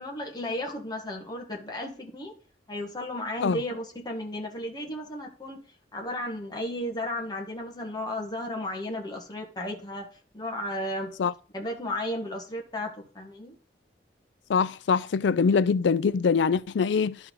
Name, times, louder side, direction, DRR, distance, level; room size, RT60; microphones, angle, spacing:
voice 1, 0.0-2.3 2.7-5.6 5.9-10.1 10.3-11.1 11.5-13.6, left 1 dB, 20° left, 1.5 m, -34 dB
voice 2, 14.5-17.2, left 5 dB, 75° left, 0.4 m, -23 dB
12.0 x 4.5 x 3.7 m
head